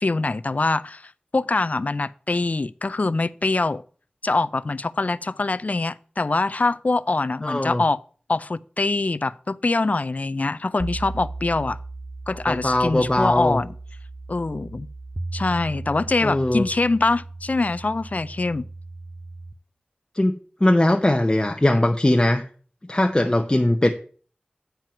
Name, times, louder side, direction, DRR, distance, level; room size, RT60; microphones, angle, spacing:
voice 1, 0.0-3.8 4.2-8.0 8.3-11.8 12.3-13.7 14.3-14.9 15.3-18.7, left 3 dB, 55° left, 0.4 m, -24 dB
voice 2, 7.4-7.8 12.5-13.6 16.2-16.6 20.1-20.3 20.6-22.4 22.9-23.9, left 1 dB, 25° left, 0.7 m, -20 dB
sound 1, 10.8-19.5, right 2 dB, 30° right, 0.5 m, -36 dB
9.1 x 4.5 x 5.8 m
wide cardioid pair, 45°, 3 cm